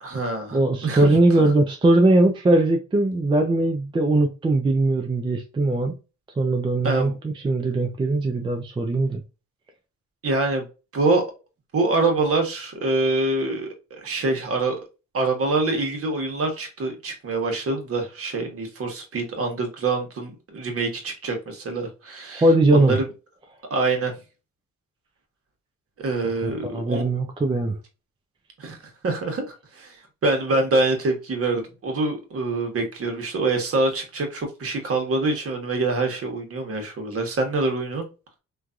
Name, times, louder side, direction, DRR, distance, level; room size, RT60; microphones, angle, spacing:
voice 1, 0.0-1.1 1.4-1.5 6.8-7.1 10.2-10.6 10.9-11.2 11.7-14.8 15.1-22.4 22.7-23.1 23.7-24.1 26.0-27.0 28.6-28.8 29.0-30.0 30.2-38.1, right 3 dB, 50° right, 1.1 m, -25 dB
voice 2, 0.5-5.9 6.4-9.2 22.3-23.0 26.4-27.8, right 2 dB, 15° right, 0.4 m, -20 dB
3.1 x 2.3 x 2.5 m
cardioid pair, 90°, 30 cm